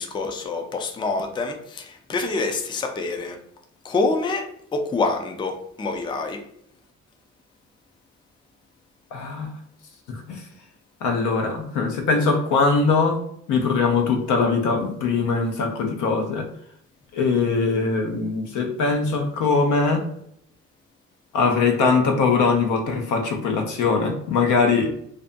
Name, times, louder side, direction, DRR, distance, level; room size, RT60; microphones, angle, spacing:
voice 1, 0.0-3.4 3.8-6.4, left 3 dB, 15° left, 4 dB, 0.4 m, -26 dB
voice 2, 9.1-9.5 10.1-10.4 11.0-13.2 13.5-16.5 17.1-20.0 21.3-25.0, left 4 dB, 80° left, 3 dB, 0.6 m, -21 dB
2.5 x 2.2 x 2.5 m, 0.71 s
cardioid pair, 90°, 30 cm